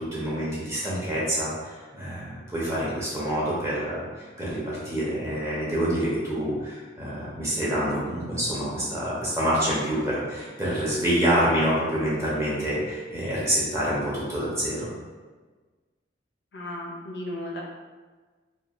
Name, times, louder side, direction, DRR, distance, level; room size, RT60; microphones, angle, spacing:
voice 1, 0.0-14.9, equal, 15° right, -7 dB, 0.7 m, -27 dB
voice 2, 16.5-17.6, left 1 dB, 60° left, -1 dB, 0.4 m, -35 dB
3.1 x 2.2 x 2.4 m, 1.4 s
head